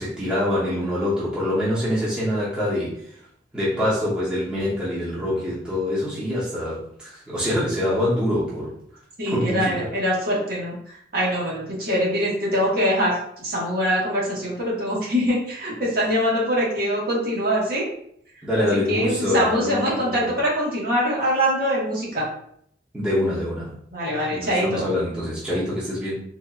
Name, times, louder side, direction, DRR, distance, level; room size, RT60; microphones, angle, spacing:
voice 1, 0.0-3.0 3.5-8.7 9.3-9.9 18.4-20.3 22.9-23.8 24.3-26.2, left 1 dB, 5° right, -10 dB, 1.0 m, -25 dB
voice 2, 9.2-17.9 18.6-22.3 23.9-24.8, equal, 55° right, -6 dB, 1.4 m, -23 dB
4.0 x 2.5 x 2.4 m, 0.67 s
head